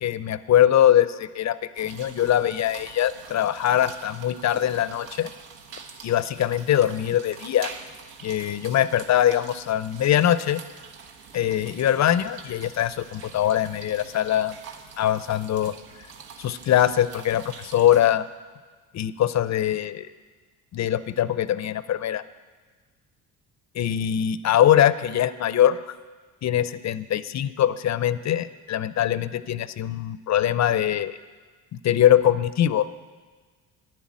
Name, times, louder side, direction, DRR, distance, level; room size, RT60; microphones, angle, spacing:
voice 1, 0.0-5.3 6.0-7.7 8.2-10.6 11.3-14.6 15.0-15.7 16.4-18.2 18.9-20.1 20.7-22.2 23.7-26.0 26.4-31.2 31.8-32.9, left 11 dB, 40° left, 15 dB, 0.6 m, -22 dB
sound 1, 1.7-18.0, right 5 dB, 65° right, 1.3 m, -45 dB
10.0 x 7.5 x 8.5 m, 1.4 s
supercardioid pair, 75°, 41 cm